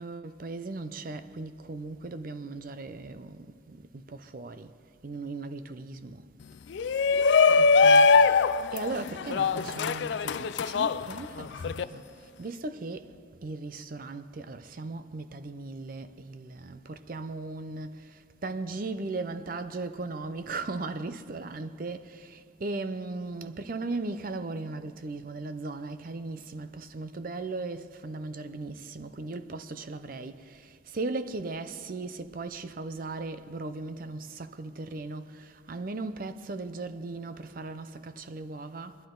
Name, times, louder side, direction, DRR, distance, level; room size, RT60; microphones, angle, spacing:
voice 1, 0.0-4.7 5.0-6.2 7.6-12.0 12.4-13.1 13.4-39.0, right 3 dB, 45° right, 0.5 m, -37 dB
Shout, 6.7-11.8, left 4 dB, 65° left, 0.3 m, -22 dB
21.5 x 11.5 x 3.8 m
head